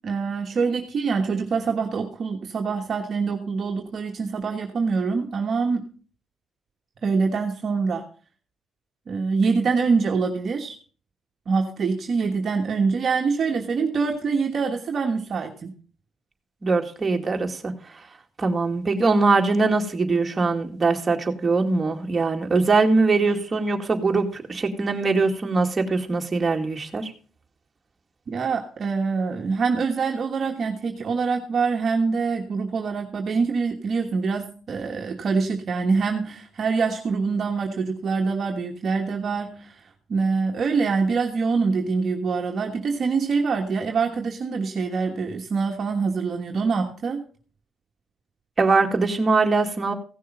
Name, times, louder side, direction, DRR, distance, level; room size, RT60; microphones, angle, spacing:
voice 1, 0.0-5.9 7.0-8.0 9.1-10.7 11.5-15.7 28.3-47.2, right 4 dB, 50° right, 2 dB, 1.3 m, -25 dB
voice 2, 16.6-17.7 18.4-27.1 48.6-49.9, right 3 dB, 30° right, 2 dB, 2.0 m, -22 dB
16.0 x 6.6 x 5.3 m, 0.41 s
cardioid pair, 90°, 0 cm